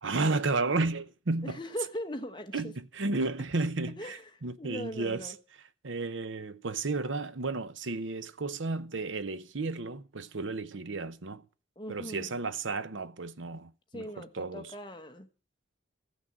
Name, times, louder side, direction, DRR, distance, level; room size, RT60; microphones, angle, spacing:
voice 1, 0.0-1.6 2.5-5.3 5.8-11.4 11.9-14.7, right 3 dB, 80° right, 0.9 m, -33 dB
voice 2, 1.4-2.7 3.9-4.3 4.6-5.4 11.8-12.3 13.9-15.3, equal, 25° left, 1.2 m, -40 dB
15.5 x 6.3 x 8.8 m
head